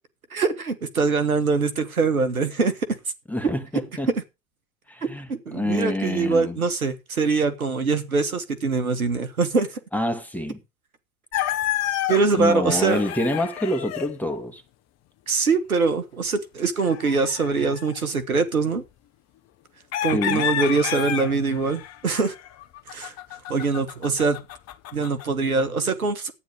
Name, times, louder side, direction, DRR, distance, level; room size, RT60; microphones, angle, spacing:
voice 1, 0.3-2.8 5.0-9.8 12.1-13.0 15.3-18.8 20.0-22.3 22.9-23.1 23.5-24.4 24.9-26.3, right 4 dB, 90° right, 1.6 m, -23 dB
voice 2, 3.3-4.1 4.9-5.3 5.5-6.6 9.9-10.6 12.4-14.6 20.1-20.5, left 1 dB, 5° left, 2.1 m, -26 dB
sound 1, 11.3-14.1 16.8-18.0 19.9-25.3, left 12 dB, 40° left, 1.0 m, -30 dB
12.0 x 9.4 x 4.9 m
hypercardioid pair, 85°, 41 cm